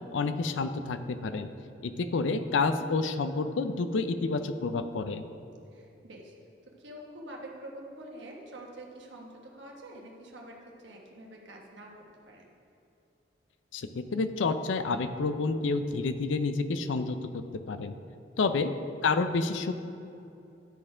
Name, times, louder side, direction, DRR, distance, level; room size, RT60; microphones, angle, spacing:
voice 1, 0.1-1.5 1.8-5.2 13.7-17.9 18.4-18.7 19.0-19.7, left 4 dB, 90° left, 10 dB, 0.4 m, -29 dB
voice 2, 5.7-6.3 6.6-11.9 12.2-12.5 18.4-18.7, right 1 dB, 80° right, -1 dB, 1.2 m, -46 dB
11.0 x 4.3 x 4.9 m, 2.7 s
head